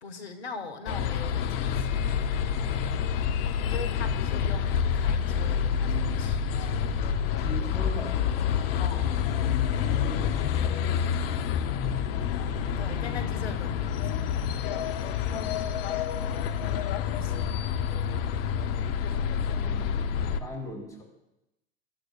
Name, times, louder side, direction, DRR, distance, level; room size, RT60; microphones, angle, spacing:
voice 1, 0.0-2.1 3.7-7.1 8.7-9.1 12.8-14.3 17.1-17.6, left 4 dB, 85° left, 6 dB, 1.6 m, -41 dB
sound 1, 0.9-20.4, left 8 dB, 60° left, 1.0 m, -28 dB
voice 2, 2.5-3.0 7.4-8.2 9.9-10.9 15.1-15.9 19.5-20.0 20.4-21.0, left 1 dB, 10° left, -2 dB, 6.1 m, -41 dB
sound 2, 5.6-13.0, right 2 dB, 30° left, 1.6 m, -42 dB
23.5 x 13.0 x 2.4 m, 0.90 s
hypercardioid pair, 85°, 32 cm